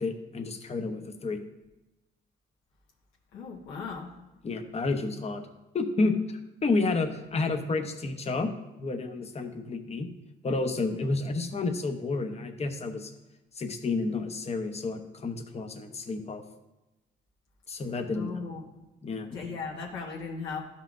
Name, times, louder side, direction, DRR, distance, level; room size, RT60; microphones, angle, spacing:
voice 1, 0.0-1.4 4.4-5.4 5.7-8.5 8.8-10.1 10.4-13.1 13.5-16.4 17.7-18.4 19.0-19.4, left 3 dB, 30° left, 5 dB, 0.9 m, -30 dB
voice 2, 3.3-4.1 7.3-7.4 18.1-18.6 19.3-20.6, left 5 dB, 85° left, -3 dB, 1.3 m, -37 dB
12.0 x 5.6 x 2.5 m, 1.0 s
cardioid pair, 90°, 20 cm